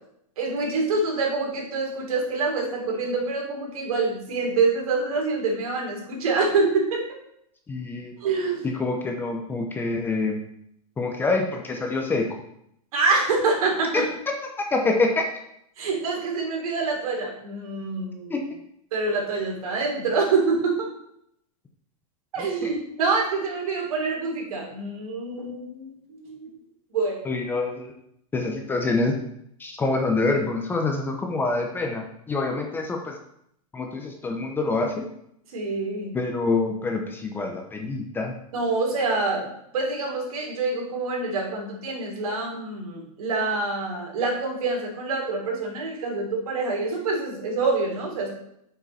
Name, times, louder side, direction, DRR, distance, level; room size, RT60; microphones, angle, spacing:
voice 1, 0.4-7.0 8.2-8.7 12.9-14.0 15.8-18.4 18.9-20.9 22.3-26.5 26.9-27.2 35.5-36.1 38.5-39.5 39.7-48.4, right 3 dB, 75° right, -1 dB, 3.3 m, -26 dB
voice 2, 7.7-8.1 8.6-10.4 11.0-12.3 13.9-14.0 14.7-15.3 18.3-18.4 22.4-22.7 27.2-27.9 28.3-29.1 29.6-33.2 33.7-35.1 36.1-38.3, left 3 dB, 10° left, 2 dB, 0.7 m, -26 dB
7.4 x 5.8 x 4.2 m, 0.74 s
supercardioid pair, 150°, 19 cm